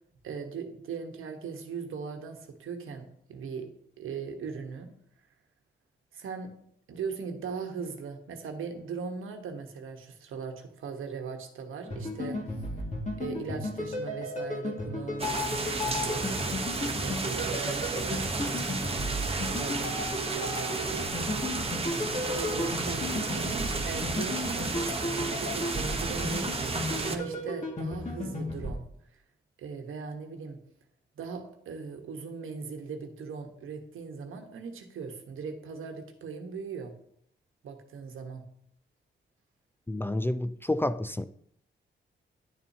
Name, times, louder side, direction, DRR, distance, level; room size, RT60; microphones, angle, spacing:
voice 1, 0.2-3.7 4.0-4.9 6.1-6.5 6.9-12.4 13.2-16.6 16.8-19.0 19.5-21.8 22.3-28.8 29.6-30.6 31.2-36.9 37.6-38.4, right 5 dB, 90° right, 1.1 m, -39 dB
sound 1, 11.9-28.7, left 1 dB, 35° left, 2.0 m, -34 dB
sound 2, 15.2-27.2, right 3 dB, 30° right, 0.9 m, -32 dB
voice 2, 39.9-41.3, left 1 dB, 10° left, 0.3 m, -29 dB
10.5 x 7.1 x 2.8 m
cardioid pair, 70°, 20 cm